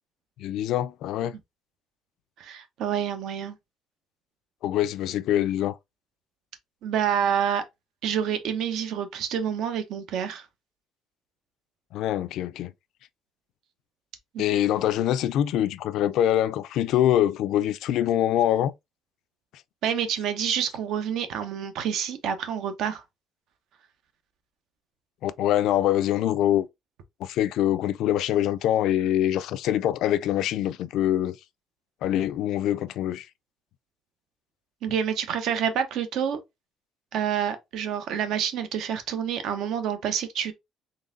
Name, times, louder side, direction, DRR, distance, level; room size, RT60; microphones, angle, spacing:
voice 1, 0.4-1.3 4.6-5.8 11.9-12.7 14.4-18.7 25.2-26.7 27.2-31.4 32.0-33.3, left 12 dB, 75° left, 0.4 m, -24 dB
voice 2, 2.4-3.6 6.8-7.6 8.0-10.4 14.3-14.4 19.8-23.0 34.8-36.4 37.1-40.5, right 8 dB, 70° right, 0.8 m, -28 dB
3.9 x 3.5 x 2.6 m
cardioid pair, 150°, 0 cm